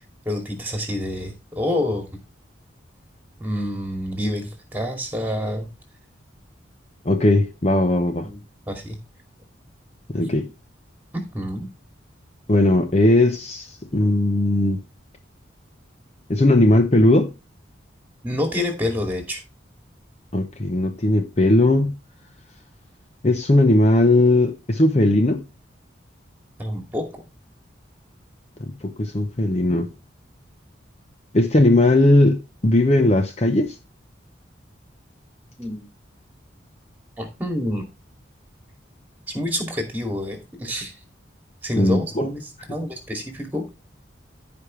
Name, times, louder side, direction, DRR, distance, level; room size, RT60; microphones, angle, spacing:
voice 1, 0.3-2.1 3.4-5.7 8.2-8.4 8.7-9.0 11.1-11.7 18.2-19.4 26.6-27.0 35.6-35.8 37.2-37.8 39.3-40.9 41.6-42.4 42.7-43.6, left 1 dB, 10° right, 2.4 m, -27 dB
voice 2, 7.0-8.3 10.1-10.5 12.5-14.8 16.3-17.3 20.3-22.0 23.2-25.4 28.6-29.9 31.3-33.7 41.8-42.3, left 1 dB, 35° left, 0.7 m, -18 dB
15.0 x 5.1 x 3.2 m
head